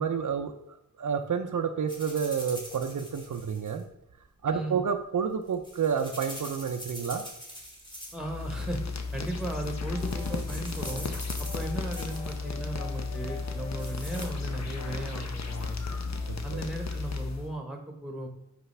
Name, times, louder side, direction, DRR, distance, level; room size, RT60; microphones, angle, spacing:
voice 1, 0.0-3.8 4.4-7.2 16.3-16.6, right 6 dB, 65° right, 6 dB, 0.6 m, -30 dB
sound 1, 1.9-3.8 5.3-8.4 8.6-9.1 9.6-9.7 10.0-12.4 13.4-14.3, equal, 15° left, 1.7 m, -44 dB
voice 2, 4.5-4.8 8.1-8.8 9.1-11.1 11.5-16.0 16.4-18.3, right 1 dB, ahead, 2 dB, 1.3 m, -36 dB
sound 2, 8.1-17.5, left 4 dB, 55° left, 0.8 m, -34 dB
sound 3, 9.8-10.5 10.8-15.0 15.4-15.7 16.1-16.7, left 2 dB, 85° left, 2.7 m, -48 dB
8.0 x 5.2 x 3.3 m, 0.86 s
wide cardioid pair, 115°, 33 cm